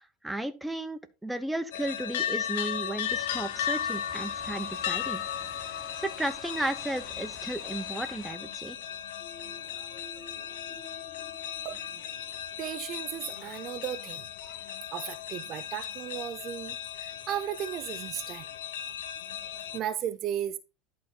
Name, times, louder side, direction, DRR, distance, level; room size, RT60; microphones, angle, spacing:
voice 1, 0.0-5.2 5.7-8.8, right 1 dB, 5° right, 1.0 m, -34 dB
sound 1, 1.7-19.8, left 9 dB, 85° left, 0.9 m, -36 dB
sound 2, 3.0-8.3, left 3 dB, 25° left, 4.8 m, -49 dB
sound 3, 9.2-12.9, right 1 dB, 40° left, 5.8 m, -53 dB
voice 2, 12.6-14.6 14.9-18.5 19.5-20.6, right 11 dB, 45° right, 0.6 m, -35 dB
11.0 x 4.2 x 4.2 m
supercardioid pair, 125°, 0 cm